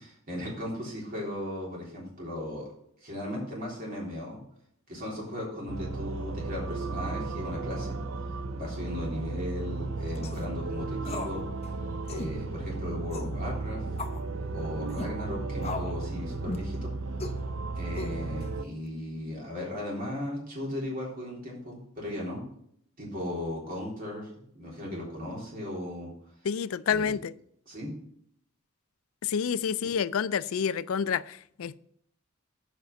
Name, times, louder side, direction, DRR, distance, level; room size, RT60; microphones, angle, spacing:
voice 1, 0.0-2.7 3.0-4.4 4.9-8.0 8.5-11.4 12.0-13.8 14.5-16.9 17.7-22.4 23.0-26.1 26.9-27.2 27.7-27.9, left 1 dB, 45° right, 3.4 m, -37 dB
sound 1, 5.7-18.7, right 3 dB, 70° right, 0.6 m, -34 dB
sound 2, 10.2-10.5 11.0-11.4 11.6-11.7 12.1-12.3 13.1-13.4 14.0-14.2 14.9-15.1 15.6-16.0 16.5-16.7 17.2-17.4 18.0-18.4, left 3 dB, 30° left, 0.8 m, -37 dB
voice 2, 26.4-27.3 29.2-31.8, left 7 dB, 80° left, 0.4 m, -29 dB
8.2 x 5.3 x 5.8 m
head